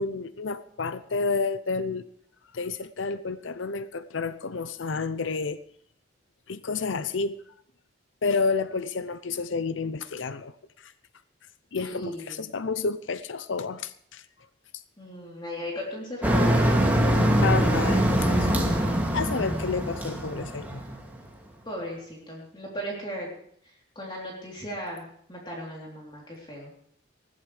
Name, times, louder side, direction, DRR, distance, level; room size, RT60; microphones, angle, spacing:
voice 1, 0.0-2.0 2.5-5.6 6.5-7.4 8.2-10.5 10.8-10.9 11.7-14.2 14.7-14.8 17.4-18.5 19.1-20.8, left 4 dB, 85° left, 0.7 m, -30 dB
voice 2, 11.8-12.4 15.0-16.7 21.7-23.3 24.0-25.0 25.3-26.7, equal, 25° left, 3.5 m, -36 dB
Motor vehicle (road), 16.2-21.2, equal, 10° right, 2.5 m, -23 dB
20.0 x 14.5 x 3.4 m
head